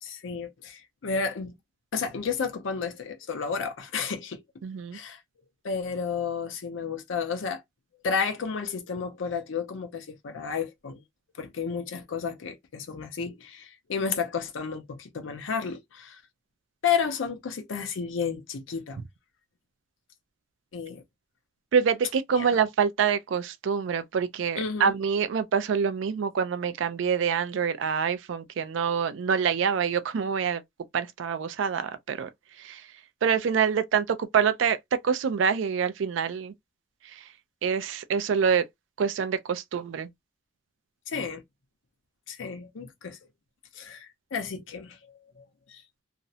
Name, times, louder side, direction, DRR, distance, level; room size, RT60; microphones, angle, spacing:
voice 1, 0.0-1.5 1.9-4.4 4.9-5.2 5.6-7.6 8.0-11.0 11.4-16.2 16.8-19.0 20.7-21.0 22.3-22.6 24.6-24.9 41.1-41.4 42.3-43.2 43.7-46.0, left 6 dB, 85° left, 0.5 m, -32 dB
voice 2, 4.6-5.0 21.7-30.6 30.9-32.3 32.6-32.8 33.2-36.5 37.1-37.2 37.6-38.6 39.0-40.1, right 7 dB, 80° right, 0.4 m, -26 dB
2.4 x 2.0 x 2.6 m
head